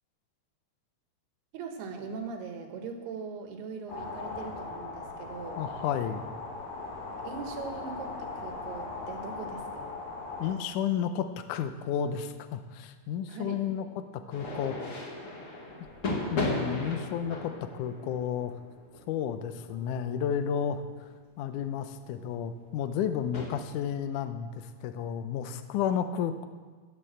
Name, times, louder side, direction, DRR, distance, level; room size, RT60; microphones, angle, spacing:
voice 1, 1.5-5.6 7.2-10.0 13.3-13.6, right 5 dB, 80° right, 4 dB, 3.5 m, -40 dB
sound 1, 3.9-10.5, left 3 dB, 60° left, 4.4 m, -39 dB
voice 2, 5.6-6.3 10.4-13.9 14.1-14.8 16.1-18.6 19.1-21.1 21.4-26.5, left 8 dB, 90° left, 9 dB, 1.8 m, -32 dB
sound 2, 14.3-20.7 21.5-21.7 21.9-22.2 23.0-23.5, left 2 dB, 40° left, 2.9 m, -36 dB
16.5 x 8.0 x 7.5 m, 1.5 s
omnidirectional pair, 4.6 m